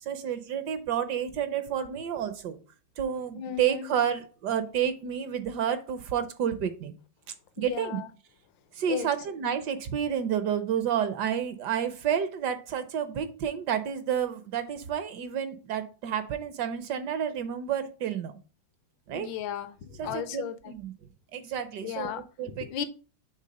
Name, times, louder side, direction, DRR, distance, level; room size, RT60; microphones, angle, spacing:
voice 1, 0.0-2.6 3.0-6.9 7.6-8.0 8.7-18.3 19.1-19.3 20.0-20.9 21.3-22.1 22.4-22.8, right 9 dB, 70° right, 1.1 m, -30 dB
voice 2, 3.3-3.9 7.6-8.1 8.9-9.1 19.1-20.7 21.8-22.8, left 10 dB, 75° left, 1.4 m, -35 dB
6.6 x 3.4 x 5.1 m
omnidirectional pair, 2.1 m